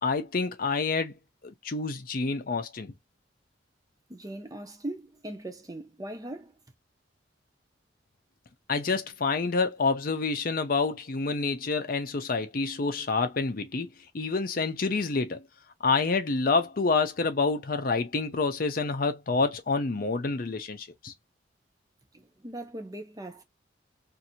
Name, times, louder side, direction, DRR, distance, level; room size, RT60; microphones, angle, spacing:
voice 1, 0.0-1.1 1.4-2.9 8.7-13.9 14.1-15.4 15.8-21.1, left 4 dB, 50° left, 0.6 m, -28 dB
voice 2, 4.1-6.5 22.1-23.4, right 1 dB, 20° right, 0.6 m, -40 dB
2.6 x 2.6 x 2.8 m
head